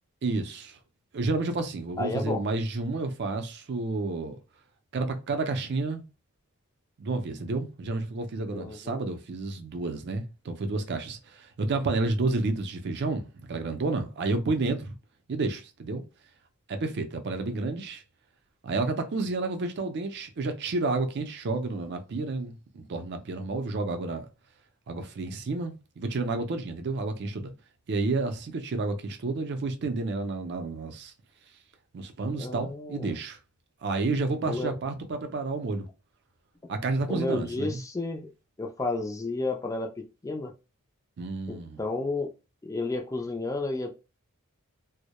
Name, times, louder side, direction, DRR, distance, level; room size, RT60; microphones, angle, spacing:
voice 1, 0.2-0.8 1.1-4.4 4.9-6.0 7.0-14.9 15.3-16.0 16.7-18.0 18.6-24.3 24.9-27.5 27.9-31.1 31.9-33.4 33.8-35.9 36.7-37.8 41.2-41.8, right 3 dB, 50° right, 0.4 m, -30 dB
voice 2, 2.0-2.4 8.5-9.0 32.4-33.1 34.5-34.7 37.1-38.3 38.6-40.5 41.5-42.3 42.6-44.0, left 2 dB, 15° left, 0.3 m, -32 dB
2.2 x 2.0 x 2.8 m
head